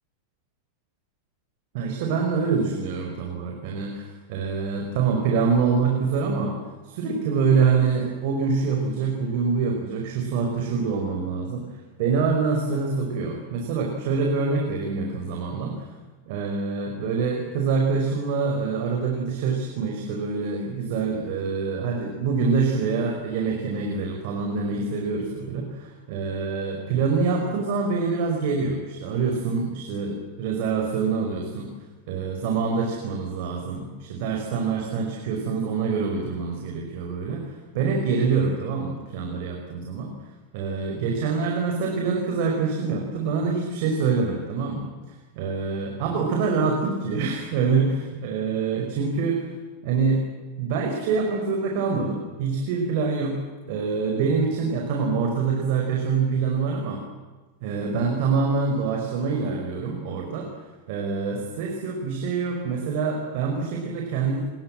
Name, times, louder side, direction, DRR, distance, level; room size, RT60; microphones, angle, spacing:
voice 1, 1.7-6.6 6.8-11.7 12.0-15.8 16.3-31.7 32.1-40.1 40.5-44.9 45.4-49.5 49.8-50.2 50.6-53.4 53.6-57.0 57.6-60.5 60.9-64.4, right 5 dB, 50° right, 1 dB, 5.3 m, -25 dB
28.0 x 21.5 x 7.8 m, 1.3 s
supercardioid pair, 170°, 0 cm